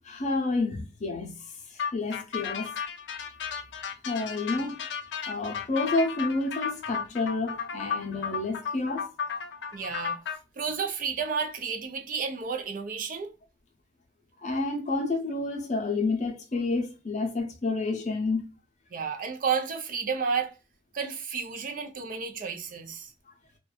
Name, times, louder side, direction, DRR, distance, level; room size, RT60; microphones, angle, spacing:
voice 1, 0.0-1.3 1.7-2.7 4.0-4.8 5.3-9.1 14.4-18.5, left 3 dB, 45° left, 0.6 m, -29 dB
sound 1, 1.8-10.4, left 6 dB, 85° left, 0.4 m, -34 dB
voice 2, 9.7-10.2 10.6-13.3 18.9-20.5 20.9-23.1, right 5 dB, 50° right, 0.5 m, -31 dB
2.5 x 2.2 x 2.3 m
head